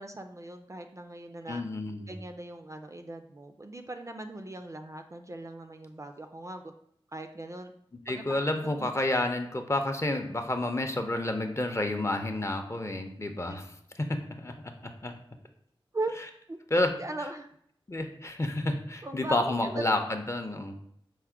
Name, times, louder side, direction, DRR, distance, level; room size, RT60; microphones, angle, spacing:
voice 1, 0.0-1.6 2.1-6.7 7.1-7.7 8.1-8.9 15.9-16.1 16.5-16.6 17.0-17.5 19.0-19.8, right 2 dB, 30° right, 6 dB, 0.3 m, -39 dB
voice 2, 1.5-2.1 8.1-13.7 13.9-15.1 16.7-16.9 17.9-20.8, left 1 dB, 30° left, 5 dB, 0.5 m, -30 dB
4.6 x 2.1 x 4.5 m, 0.68 s
wide cardioid pair, 55°, 10 cm